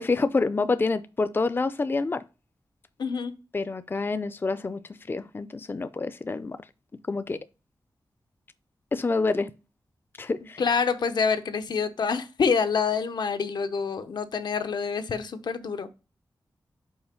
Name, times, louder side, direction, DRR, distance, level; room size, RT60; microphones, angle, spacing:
voice 1, 0.0-2.2 3.5-6.6 7.1-7.4 8.9-9.5 10.2-10.6, left 3 dB, 30° left, 0.4 m, -27 dB
voice 2, 3.0-3.3 10.6-15.9, left 5 dB, 80° left, 0.8 m, -26 dB
5.6 x 4.6 x 4.3 m
wide cardioid pair, 90°, 7 cm